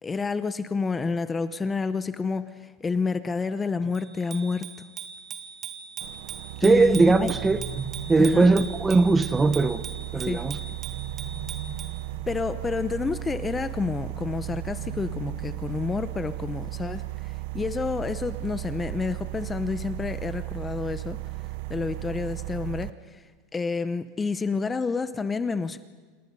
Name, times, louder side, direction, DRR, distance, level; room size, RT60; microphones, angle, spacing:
voice 1, 0.0-4.7 6.6-7.3 8.2-8.5 10.2-10.4 12.3-21.2 21.7-23.2 23.5-25.8, left 4 dB, 15° left, 0.8 m, -29 dB
Bicycle bell, 3.9-12.0, right 6 dB, 30° right, 2.1 m, -40 dB
sound 1, 6.0-22.9, right 20 dB, 65° right, 0.7 m, -36 dB
voice 2, 6.6-9.8 10.1-10.6, right 3 dB, 15° right, 1.0 m, -20 dB
sound 2, 6.9-8.7 10.5-12.4 14.2-16.2, right 4 dB, 85° right, 3.7 m, -41 dB
29.5 x 28.0 x 5.5 m
supercardioid pair, 140°, 0 cm